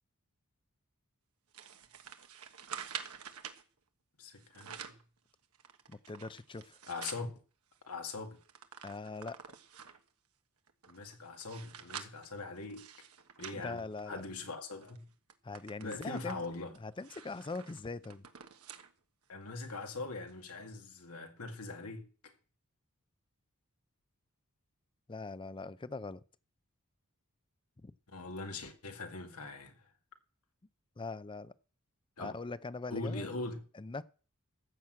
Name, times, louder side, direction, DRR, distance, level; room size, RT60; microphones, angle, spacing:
sound 1, 1.5-3.6 4.4-5.1 5.5-7.3 7.7-7.8 8.1-10.1 10.7-14.4 14.8-15.0 15.3-18.9 19.3-19.4 20.3-20.4, right 8 dB, 85° right, 1.4 m, -48 dB
voice 1, 4.2-4.8 6.9-7.3 7.8-8.4 10.9-12.9 13.4-15.1 15.8-16.8 19.3-22.3 28.1-29.7 32.2-32.4 32.9-33.6, left 3 dB, 90° left, 2.1 m, -42 dB
voice 2, 5.9-6.8 8.8-9.4 13.5-14.2 15.4-16.4 16.8-18.2 25.1-26.2 27.8-27.9 31.0-31.5 32.2-33.3 33.7-34.0, left 3 dB, 20° left, 0.5 m, -41 dB
14.5 x 6.2 x 7.6 m
head